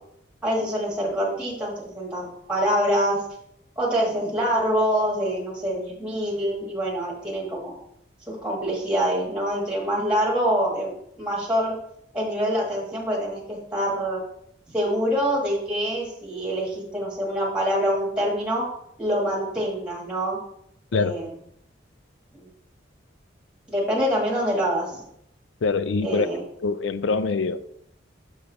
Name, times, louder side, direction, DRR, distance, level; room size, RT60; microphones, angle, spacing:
voice 1, 0.4-3.2 3.8-7.7 8.3-11.7 12.1-14.2 14.7-18.7 19.0-20.4 20.9-21.3 22.3-22.5 23.7-25.0 26.0-26.4, equal, 5° right, -4 dB, 1.8 m, -25 dB
voice 2, 25.6-26.3 26.6-27.6, left 4 dB, 85° left, 14 dB, 0.4 m, -24 dB
6.6 x 5.7 x 4.0 m, 0.73 s
head